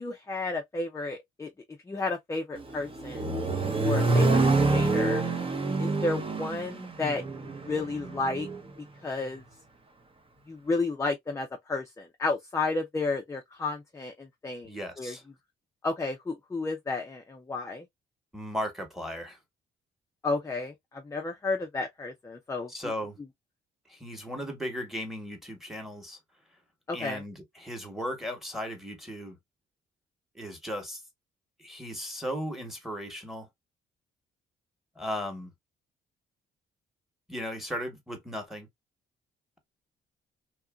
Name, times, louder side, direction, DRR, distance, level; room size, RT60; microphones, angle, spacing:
voice 1, 0.0-1.5 1.9-3.3 3.8-5.2 5.8-8.5 9.0-9.4 10.5-15.2 15.8-17.9 20.2-22.7 26.9-27.2, left 3 dB, 15° left, 0.5 m, -32 dB
Accelerating revving vroom, 2.6-8.6, right 3 dB, 25° right, 0.7 m, -27 dB
voice 2, 14.6-15.2 18.3-19.4 22.7-23.2 23.9-26.2 26.9-29.4 30.3-31.0 31.6-33.5 35.0-35.5 37.3-38.7, equal, ahead, 1.1 m, -36 dB
2.9 x 2.4 x 2.3 m
cardioid pair, 90°, 20 cm